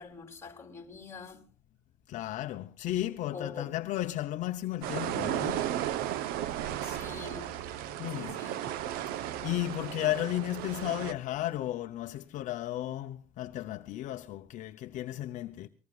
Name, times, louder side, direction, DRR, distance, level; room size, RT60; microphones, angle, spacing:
voice 1, 0.0-1.4 3.3-3.7 6.8-7.6 8.1-8.7 9.2-9.4, left 5 dB, 15° left, 2.9 m, -45 dB
voice 2, 2.1-5.6 8.0-8.4 9.1-15.7, left 14 dB, 50° left, 0.7 m, -34 dB
sound 1, 4.8-11.1, right 11 dB, 70° right, 0.9 m, -35 dB
24.0 x 19.5 x 2.4 m
cardioid pair, 120°, 16 cm